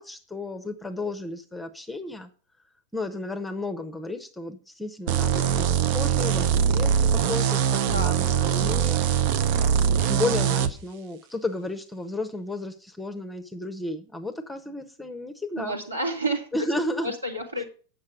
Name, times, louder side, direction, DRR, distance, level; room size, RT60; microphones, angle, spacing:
voice 1, 0.0-2.3 2.9-9.4 9.7-15.8 16.5-17.1, left 2 dB, 5° left, 8 dB, 0.9 m, -33 dB
sound 1, 5.1-10.7, right 8 dB, 50° right, 0.7 m, -22 dB
voice 2, 7.9-8.5 15.6-16.5 17.0-17.6, right 1 dB, 80° right, 0 dB, 2.0 m, -30 dB
8.8 x 6.6 x 4.9 m, 0.38 s
figure-of-eight pair, 90°, 0 cm